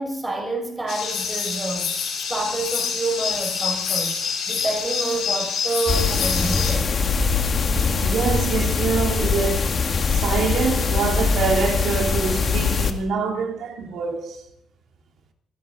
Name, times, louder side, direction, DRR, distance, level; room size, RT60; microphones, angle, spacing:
voice 1, 0.0-1.9 2.3-4.1 4.5-6.9, right 2 dB, 15° right, 5.3 m, -28 dB
sound 1, 0.9-6.7, left 6 dB, 75° left, 5.7 m, -26 dB
sound 2, 5.9-12.9, left 5 dB, 45° left, 1.7 m, -22 dB
voice 2, 7.5-14.4, right 5 dB, 70° right, 3.1 m, -25 dB
25.5 x 10.5 x 3.9 m
cardioid pair, 90°, 0 cm